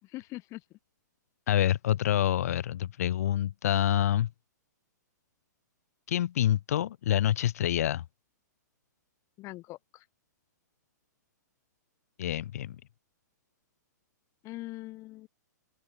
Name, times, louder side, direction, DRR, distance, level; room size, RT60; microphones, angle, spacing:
voice 1, 0.0-0.8 9.4-10.0 14.4-15.3, left 19 dB, 30° left, 6.0 m, -42 dB
voice 2, 1.5-4.3 6.1-8.0 12.2-12.8, left 11 dB, 55° left, 2.5 m, -27 dB
open air
figure-of-eight pair, 115°, 10 cm